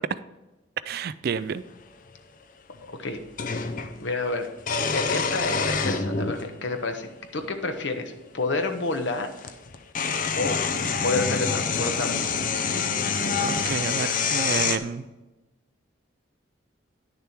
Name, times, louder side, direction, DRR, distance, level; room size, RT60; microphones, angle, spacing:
voice 1, 0.9-1.6 13.4-15.1, right 6 dB, 50° right, 16 dB, 0.3 m, -30 dB
sound 1, 1.7-1.8 3.4-3.9 4.6-6.4 7.4-7.5 9.0-9.1 9.4-14.8, left 5 dB, 40° left, 0.6 m, -26 dB
voice 2, 2.8-3.2 3.9-4.5 4.9-9.3 10.3-10.6 11.0-12.3, left 3 dB, 60° left, 6 dB, 1.1 m, -29 dB
10.0 x 6.8 x 4.5 m, 1.1 s
head